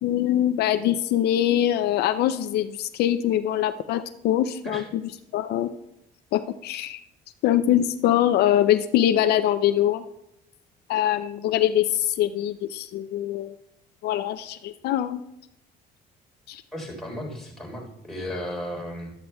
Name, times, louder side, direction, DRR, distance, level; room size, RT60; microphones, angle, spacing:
voice 1, 0.0-4.8 5.3-5.7 6.3-7.0 7.4-10.0 10.9-13.5 14.0-15.2 16.5-16.6, left 11 dB, 75° left, 10 dB, 0.5 m, -23 dB
voice 2, 16.7-19.1, left 1 dB, ahead, -2 dB, 3.7 m, -34 dB
13.0 x 12.0 x 2.3 m, 0.85 s
cardioid pair, 110°, 17 cm